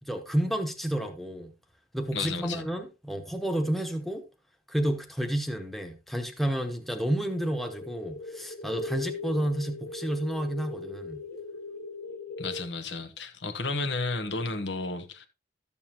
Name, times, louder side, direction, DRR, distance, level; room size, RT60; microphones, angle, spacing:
voice 1, 0.0-1.5 1.9-4.2 4.7-11.2, right 1 dB, ahead, 1.0 m, -30 dB
voice 2, 2.1-2.7 12.4-15.3, left 3 dB, 90° left, 1.3 m, -32 dB
sound 1, 7.1-12.6, left 4 dB, 55° left, 0.7 m, -39 dB
13.0 x 7.1 x 2.9 m
head